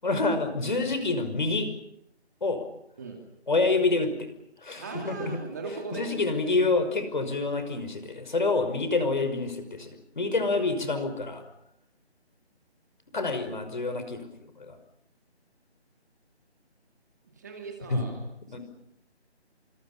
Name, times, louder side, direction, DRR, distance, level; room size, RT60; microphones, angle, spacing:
voice 1, 0.0-1.7 2.4-2.6 3.5-4.3 4.6-5.4 5.9-11.4 13.1-14.3 14.6-14.8 17.9-18.1 18.5-18.6, left 3 dB, 45° left, 9 dB, 5.6 m, -27 dB
voice 2, 4.8-6.0 17.4-18.2, right 3 dB, 15° right, 2 dB, 2.3 m, -38 dB
28.0 x 27.0 x 5.7 m, 0.74 s
figure-of-eight pair, 175°, 33 cm